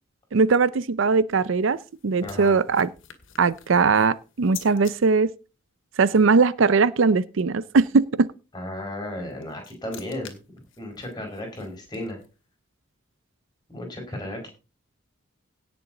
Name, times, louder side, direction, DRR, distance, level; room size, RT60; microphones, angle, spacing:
voice 1, 0.3-1.8 2.0-2.9 3.4-5.3 6.0-8.3, right 4 dB, 65° right, 0.5 m, -20 dB
sound 1, 1.3-4.9 9.1-12.4, left 9 dB, 65° left, 2.1 m, -47 dB
voice 2, 2.2-2.6 8.5-10.4 10.8-12.2 13.7-14.5, left 1 dB, 20° left, 5.0 m, -34 dB
17.5 x 7.0 x 3.9 m
head